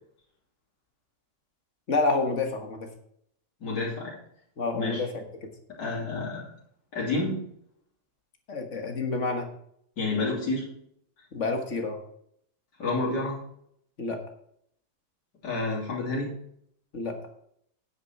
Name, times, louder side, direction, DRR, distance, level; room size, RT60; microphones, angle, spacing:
voice 1, 1.9-2.9 4.6-5.2 8.5-9.5 11.3-12.0 14.0-14.2 16.9-17.2, left 3 dB, 45° left, 4 dB, 1.7 m, -28 dB
voice 2, 3.6-4.1 4.7-5.0 5.8-6.4 6.9-7.4 10.0-10.7 12.8-13.4 15.4-16.3, left 3 dB, 65° left, -6 dB, 3.9 m, -29 dB
9.8 x 8.4 x 4.7 m, 0.70 s
omnidirectional pair, 2.0 m